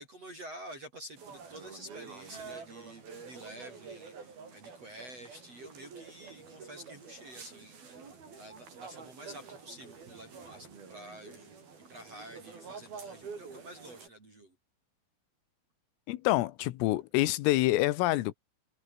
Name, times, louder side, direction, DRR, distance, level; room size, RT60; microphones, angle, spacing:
voice 1, 0.0-11.5 11.9-14.6 17.0-17.1, equal, 30° right, 6.6 m, -49 dB
sound 1, 1.2-14.1, right 5 dB, 50° right, 7.2 m, -48 dB
voice 2, 16.1-18.3, left 17 dB, 85° left, 3.7 m, -27 dB
omnidirectional pair, 5.9 m